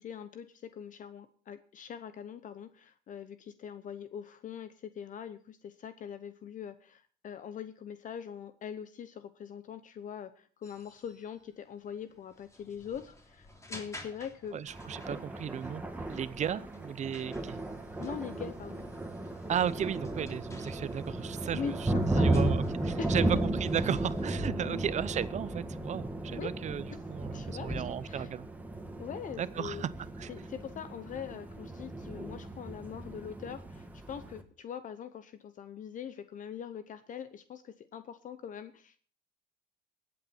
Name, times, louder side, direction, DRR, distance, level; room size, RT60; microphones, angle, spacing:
voice 1, 0.0-14.6 18.0-18.8 21.5-22.6 23.0-23.3 24.6-24.9 26.3-26.5 27.3-28.3 29.0-29.8 30.3-39.0, left 8 dB, 50° left, 12 dB, 0.9 m, -42 dB
sound 1, 10.6-24.4, left 1 dB, 15° left, 3.1 m, -54 dB
voice 2, 14.5-15.8 16.1-17.6 19.5-28.5 29.4-29.9 30.2-30.3, right 9 dB, 45° right, 17 dB, 0.7 m, -35 dB
Thunder, 14.7-34.4, right 2 dB, 10° right, 1.9 m, -35 dB
21.0 x 8.7 x 4.4 m, 0.44 s
cardioid pair, 110°, 17 cm